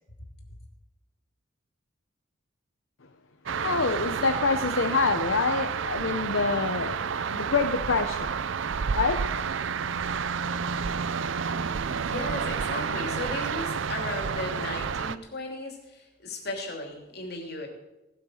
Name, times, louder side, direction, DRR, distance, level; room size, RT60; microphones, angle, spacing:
sound 1, 3.5-15.2, right 6 dB, 70° right, 0.5 m, -30 dB
voice 1, 3.6-8.3 8.9-9.2, left 4 dB, 70° left, 7 dB, 0.9 m, -26 dB
voice 2, 12.0-17.7, left 2 dB, 50° left, 2 dB, 3.0 m, -36 dB
18.0 x 8.8 x 6.5 m, 0.98 s
head